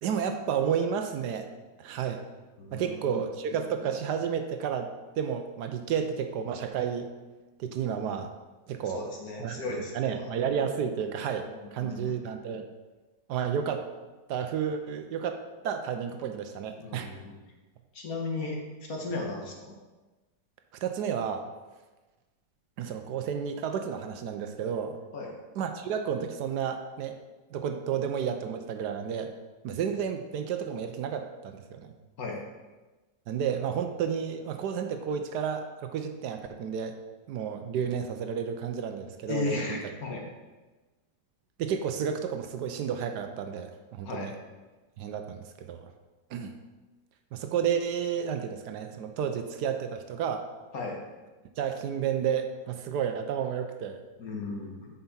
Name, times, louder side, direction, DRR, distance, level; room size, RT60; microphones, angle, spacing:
voice 1, 0.0-1.5 1.8-2.2 2.7-7.1 7.6-8.3 8.7-9.0 9.4-12.7 13.3-13.9 14.3-17.1 20.8-21.4 22.8-25.0 25.6-27.2 27.5-29.3 29.6-31.9 33.3-37.0 37.3-39.8 41.6-44.3 45.0-45.9 46.3-46.5 47.3-50.5 51.6-54.0, right 7 dB, 75° right, 7 dB, 1.2 m, -31 dB
voice 2, 2.6-3.3 8.9-10.3 11.4-12.2 16.8-17.3 17.9-18.6 18.9-19.7 25.1-25.3 32.2-32.4 39.3-40.2 44.0-44.3 50.7-51.0 54.2-54.9, left 3 dB, 55° left, -1 dB, 1.7 m, -35 dB
7.6 x 5.8 x 4.2 m, 1.2 s
omnidirectional pair, 1.9 m